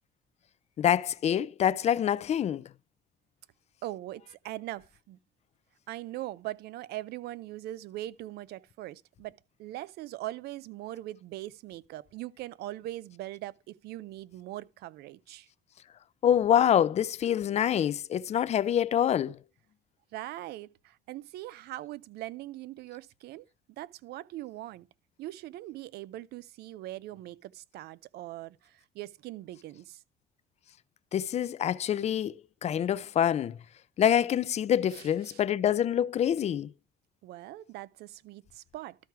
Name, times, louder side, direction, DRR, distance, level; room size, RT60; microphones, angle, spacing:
voice 1, 0.8-2.6 16.2-19.4 31.1-33.6 34.0-36.7, left 10 dB, 40° left, 0.4 m, -26 dB
voice 2, 3.8-5.2 5.9-9.3 9.6-15.5 20.1-23.4 23.8-24.9 25.2-30.0 34.9-35.4 37.2-39.0, right 15 dB, 75° right, 0.5 m, -41 dB
12.5 x 4.6 x 4.6 m
cardioid pair, 110°, 17 cm